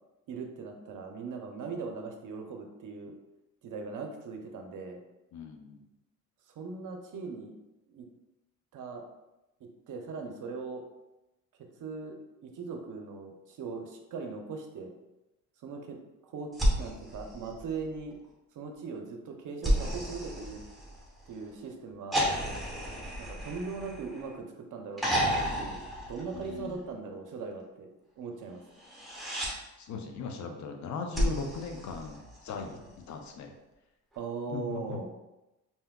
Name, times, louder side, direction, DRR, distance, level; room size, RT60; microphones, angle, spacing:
voice 1, 0.3-3.1 3.6-5.0 6.5-7.5 7.9-8.1 8.7-9.0 9.6-10.8 11.8-12.2 12.4-14.9 15.6-16.5 16.8-18.2 18.5-20.6 21.3-22.3 23.2-25.8 26.1-27.9 28.2-28.6 32.7-32.8 34.2-35.1, right 4 dB, 50° right, 4 dB, 0.6 m, -39 dB
voice 2, 5.3-5.8 26.3-26.8 29.8-33.5 34.5-35.1, left 4 dB, 45° left, 4 dB, 0.5 m, -39 dB
sound 1, 16.5-18.1 19.6-21.3 22.1-24.4 25.0-26.8 28.8-29.5 31.1-32.6 34.1-34.2, equal, ahead, 1.1 m, -32 dB
3.3 x 2.8 x 2.2 m, 0.96 s
hypercardioid pair, 55°, 41 cm